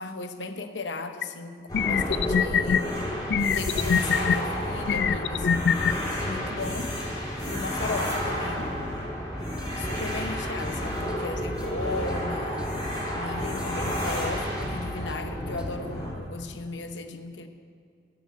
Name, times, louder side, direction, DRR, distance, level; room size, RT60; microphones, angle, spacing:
voice 1, 0.0-2.9 3.5-5.7 6.2-7.0 7.4-8.7 9.8-12.8 13.1-17.5, left 3 dB, 90° left, 8 dB, 0.9 m, -36 dB
sound 1, 1.2-1.3 1.7-2.8 3.3-4.4 4.9-5.9, left 7 dB, 70° left, 0.3 m, -23 dB
sound 2, 1.7-16.1, equal, 25° left, 3.2 m, -31 dB
sound 3, 9.3-15.8, equal, 5° right, 0.7 m, -43 dB
11.0 x 8.0 x 8.4 m, 2.3 s
head